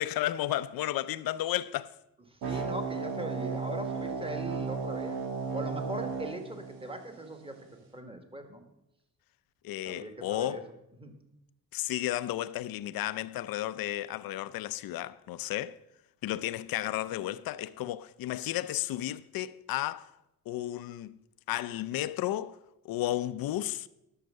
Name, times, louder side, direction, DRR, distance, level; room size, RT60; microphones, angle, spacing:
voice 1, 0.0-1.9 2.5-2.6 9.6-10.7 11.7-15.8 16.2-20.1 20.5-21.2 21.5-22.6 22.8-23.9, left 14 dB, 80° left, 0.6 m, -33 dB
voice 2, 2.3-5.2 5.5-7.7 7.9-8.6 9.8-10.6 11.0-11.2, right 1 dB, 15° right, 1.6 m, -40 dB
sound 1, 2.4-7.4, right 4 dB, 90° right, 1.6 m, -35 dB
12.0 x 6.6 x 6.4 m
cardioid pair, 90°, 35 cm